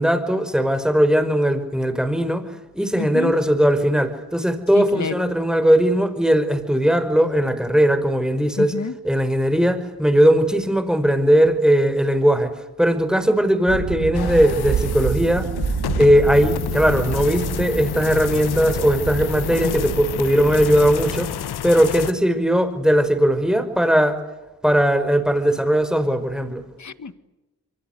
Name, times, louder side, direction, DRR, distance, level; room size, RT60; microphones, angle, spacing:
voice 1, 0.0-2.5 2.7-8.8 9.0-12.5 12.8-15.5 16.0-21.3 21.6-24.2 24.6-26.6, equal, ahead, 9 dB, 5.4 m, -18 dB
voice 2, 3.0-3.3 4.9-5.1 8.6-8.9 19.6-19.9 26.8-27.1, left 5 dB, 50° left, 13 dB, 1.9 m, -28 dB
sound 1, 13.7-21.3, right 7 dB, 85° right, 2.3 m, -29 dB
sound 2, 14.1-22.1, left 10 dB, 90° left, 1.3 m, -30 dB
27.5 x 24.0 x 8.3 m, 1.0 s
supercardioid pair, 45°, 37 cm